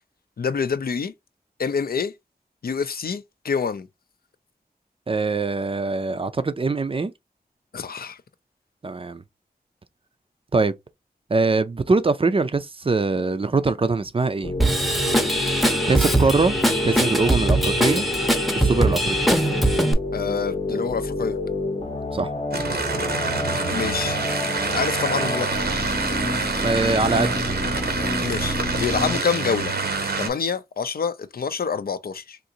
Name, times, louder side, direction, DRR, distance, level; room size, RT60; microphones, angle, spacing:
voice 1, 0.4-1.1 1.6-2.1 2.6-3.9 7.7-8.2 20.1-21.4 23.7-24.2 24.7-25.6 28.2-29.7 30.2-32.4, left 6 dB, 75° left, 0.4 m, -26 dB
voice 2, 5.1-7.1 8.8-9.2 10.5-10.7 11.3-14.5 15.9-16.6 16.8-18.1 18.6-19.3 22.1-22.3 26.6-27.5, right 3 dB, 35° right, 0.4 m, -22 dB
sound 1, 14.4-29.2, left 2 dB, 40° left, 0.7 m, -29 dB
Drum kit / Drum, 14.6-19.9, right 1 dB, ahead, 0.6 m, -21 dB
sound 2, 22.5-30.3, right 4 dB, 85° right, 0.8 m, -26 dB
3.7 x 2.6 x 2.7 m
wide cardioid pair, 80°, 16 cm